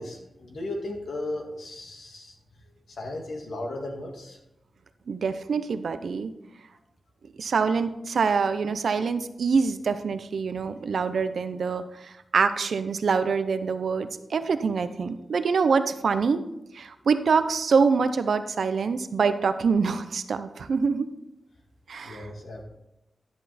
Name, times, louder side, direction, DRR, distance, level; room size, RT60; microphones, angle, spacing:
voice 1, 0.0-2.4 2.9-4.4 22.0-22.6, left 1 dB, 70° left, 1 dB, 2.0 m, -35 dB
voice 2, 5.1-6.3 7.4-16.4 16.7-21.1 21.9-22.3, right 5 dB, 70° right, 10 dB, 0.7 m, -25 dB
11.5 x 7.9 x 4.2 m, 0.87 s
wide cardioid pair, 160°, 0 cm